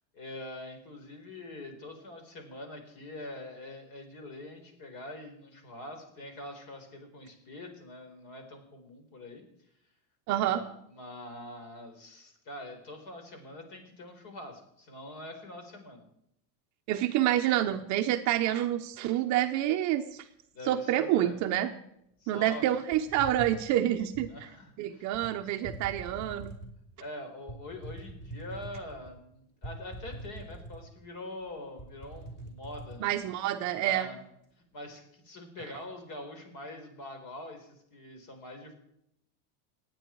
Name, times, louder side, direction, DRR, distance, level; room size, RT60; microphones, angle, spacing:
voice 1, 0.1-9.4 10.4-16.0 20.5-21.4 22.2-22.6 24.3-25.2 27.0-33.1 33.8-34.2 34.7-38.7, left 1 dB, 45° left, 5 dB, 4.6 m, -44 dB
voice 2, 10.3-10.7 16.9-20.3 20.6-21.7 22.3-24.5 24.8-26.5 33.0-34.1, right 12 dB, 35° right, 6 dB, 0.7 m, -28 dB
sound 1, 22.9-24.4 25.1-25.3 25.6-26.8 27.5-29.1 29.6-31.1 31.4-31.5 31.8-33.0, right 1 dB, 20° left, 3.5 m, -43 dB
27.0 x 9.4 x 4.6 m, 0.77 s
cardioid pair, 165°, 48 cm